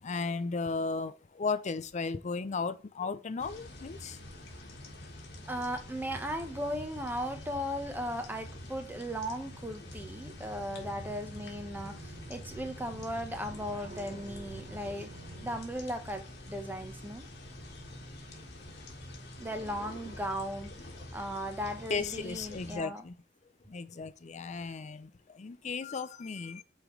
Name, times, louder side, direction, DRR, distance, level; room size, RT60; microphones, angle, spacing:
voice 1, 0.0-4.2 21.9-23.2 23.7-26.6, left 4 dB, 40° left, 0.5 m, -35 dB
sound 1, 3.4-22.8, left 1 dB, 60° left, 1.7 m, -47 dB
voice 2, 5.5-15.1 15.4-17.3 19.4-20.7 21.1-23.0, equal, 10° right, 1.0 m, -37 dB
sound 2, 10.6-15.6, right 2 dB, 40° right, 0.9 m, -48 dB
8.2 x 3.8 x 3.2 m
head